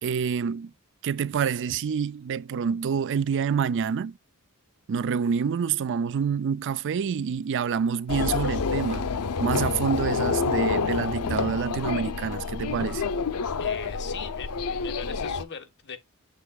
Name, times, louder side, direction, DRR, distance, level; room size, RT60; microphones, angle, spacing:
voice 1, 0.0-0.7 1.0-4.2 4.9-9.1 9.4-13.0, right 6 dB, 55° right, 0.4 m, -27 dB
sound 1, 8.1-15.4, left 5 dB, 90° left, 0.6 m, -28 dB
voice 2, 13.6-16.0, left 6 dB, 50° left, 1.5 m, -40 dB
8.0 x 6.6 x 2.4 m
head